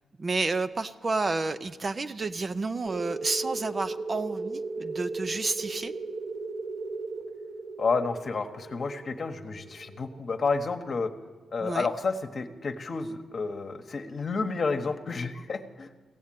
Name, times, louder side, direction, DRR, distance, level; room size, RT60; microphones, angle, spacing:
voice 1, 0.2-5.9 11.6-11.9, right 3 dB, 40° right, 10 dB, 0.5 m, -30 dB
sound 1, 2.9-11.2, right 3 dB, 70° right, 1.9 m, -37 dB
voice 2, 7.8-11.1 11.5-15.9, left 4 dB, 50° left, 6 dB, 1.0 m, -30 dB
15.5 x 7.4 x 9.0 m, 1.3 s
cardioid pair, 75°, 0 cm